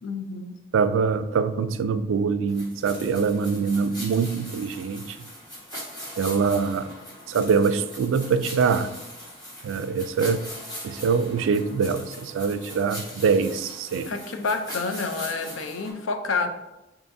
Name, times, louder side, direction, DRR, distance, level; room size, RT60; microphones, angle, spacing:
voice 1, 0.0-0.6 14.1-16.5, left 4 dB, 85° left, 7 dB, 0.5 m, -29 dB
voice 2, 0.7-5.2 6.2-6.9 7.3-8.9 9.6-10.4 10.8-14.1, right 5 dB, 80° right, 11 dB, 0.3 m, -24 dB
sound 1, 2.5-15.9, equal, 20° left, 1.3 m, -40 dB
6.9 x 2.8 x 2.6 m, 0.97 s
head